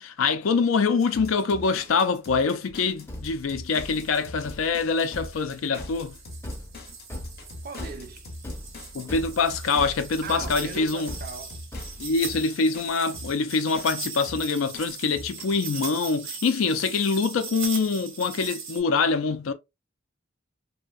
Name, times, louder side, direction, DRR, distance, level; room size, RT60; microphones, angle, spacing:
voice 1, 0.0-6.2 8.9-11.2 12.0-19.5, left 4 dB, 85° left, 0.4 m, -25 dB
sound 1, 0.7-0.8 1.1-1.2 1.4-1.5 3.0-3.1 3.7-18.8, right 6 dB, 90° right, 0.8 m, -40 dB
sound 2, 1.0-15.5, left 2 dB, 50° left, 0.7 m, -43 dB
Thump thud, 2.7-12.3, left 1 dB, 15° left, 0.5 m, -40 dB
voice 2, 7.6-8.3 10.2-11.6, right 6 dB, 50° right, 0.4 m, -39 dB
2.7 x 2.1 x 2.3 m
head